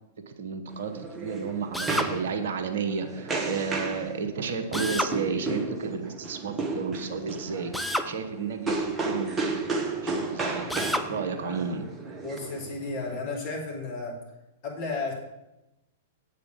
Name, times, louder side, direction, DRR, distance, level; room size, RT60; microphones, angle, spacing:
voice 1, 0.2-9.8 10.0-11.9, right 5 dB, 60° right, 7 dB, 1.0 m, -32 dB
sound 1, 0.7-13.2, right 3 dB, 20° right, 1.2 m, -33 dB
Drill, 1.7-2.1 4.7-5.2 7.7-8.1 10.7-11.1, equal, ahead, 0.5 m, -29 dB
voice 2, 12.2-14.2 14.6-15.1, left 3 dB, 45° left, -1 dB, 2.8 m, -33 dB
8.0 x 5.0 x 7.4 m, 0.94 s
figure-of-eight pair, 100°, 0 cm